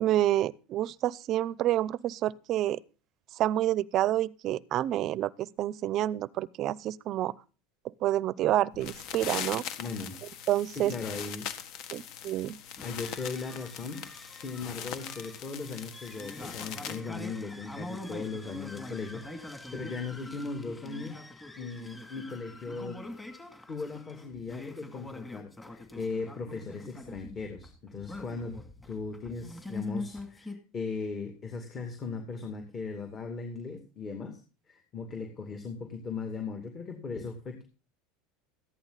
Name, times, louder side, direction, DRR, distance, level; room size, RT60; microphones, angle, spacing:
voice 1, 0.0-2.8 3.4-7.3 8.0-9.6 10.5-10.9 11.9-12.6, right 13 dB, 45° right, 0.6 m, -28 dB
sound 1, 8.7-17.0, left 9 dB, 55° left, 1.6 m, -41 dB
voice 2, 9.8-10.2 10.7-11.5 12.8-14.0 14.3-21.2 21.6-23.0 23.7-28.6 28.8-34.4 34.7-37.6, left 4 dB, 30° left, 2.4 m, -38 dB
sound 2, 12.8-30.6, left 2 dB, 10° left, 2.6 m, -44 dB
14.5 x 11.0 x 4.0 m
supercardioid pair, 120°, 0 cm